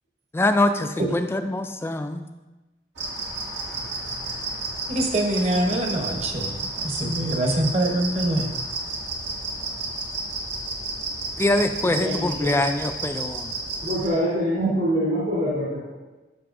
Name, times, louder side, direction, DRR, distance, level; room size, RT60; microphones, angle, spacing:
voice 1, 0.3-2.3 11.4-13.5, left 2 dB, 15° left, 7 dB, 0.3 m, -24 dB
sound 1, 3.0-14.1, right 2 dB, 85° right, 1.5 m, -32 dB
voice 2, 4.9-8.5, right 1 dB, 40° right, 3 dB, 1.0 m, -24 dB
voice 3, 11.8-12.5 13.8-15.9, equal, 60° right, -9 dB, 2.7 m, -25 dB
12.5 x 5.5 x 2.5 m, 1.1 s
head